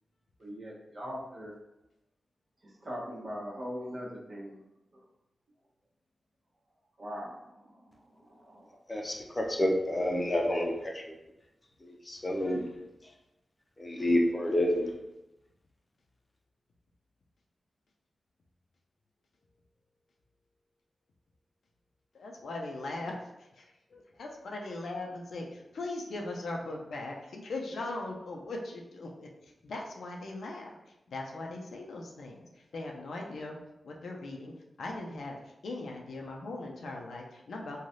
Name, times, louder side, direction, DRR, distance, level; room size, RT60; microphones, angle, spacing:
voice 1, 0.4-1.6 2.6-4.6 4.9-5.0 7.0-8.8, equal, 55° right, -5 dB, 1.0 m, -41 dB
voice 2, 8.9-11.1 11.8-12.7 13.8-14.9, left 1 dB, 30° left, 1 dB, 0.6 m, -29 dB
voice 3, 22.1-33.6 33.8-37.8, left 2 dB, 85° left, 0 dB, 0.5 m, -40 dB
3.2 x 2.3 x 2.6 m, 0.93 s
cardioid pair, 50°, 0 cm